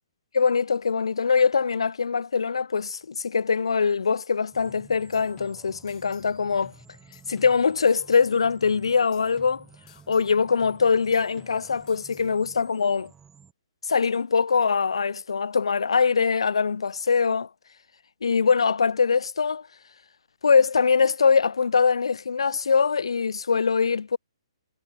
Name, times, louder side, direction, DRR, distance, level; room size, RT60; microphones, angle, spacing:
voice 1, 0.3-6.7 7.3-9.6 10.1-13.1 13.8-17.5 18.2-19.7 20.4-24.2, left 5 dB, 70° left, 0.5 m, -22 dB
sound 1, 4.5-13.5, right 7 dB, 10° right, 1.8 m, -53 dB
sound 2, 4.7-6.3 6.6-8.3 8.6-10.3 10.6-12.3, left 12 dB, 20° left, 6.6 m, -54 dB
figure-of-eight pair, 125°, 3 cm